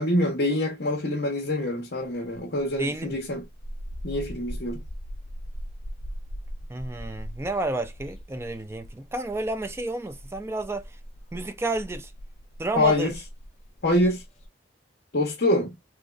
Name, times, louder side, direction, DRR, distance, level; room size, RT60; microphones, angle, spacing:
voice 1, 0.0-3.5 4.0-4.8 12.8-13.1 13.8-14.2 15.1-15.8, left 1 dB, 60° left, 1.0 m, -25 dB
sound 1, 2.0-14.5, equal, 35° left, 1.0 m, -40 dB
voice 2, 2.8-3.2 6.7-11.0 11.3-12.1 12.6-13.1, right 2 dB, 15° right, 0.3 m, -31 dB
3.7 x 2.9 x 2.4 m
head